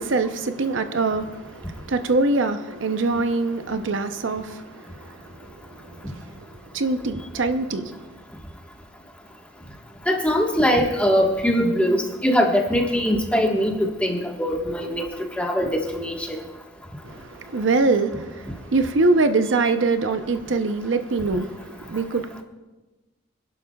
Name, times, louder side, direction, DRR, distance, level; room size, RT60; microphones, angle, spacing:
voice 1, 0.0-8.1 17.0-22.4, right 3 dB, 75° right, 0.7 m, -24 dB
voice 2, 10.1-12.0 12.2-15.1 15.4-16.4, equal, 5° left, 1.4 m, -21 dB
25.5 x 11.5 x 2.4 m
head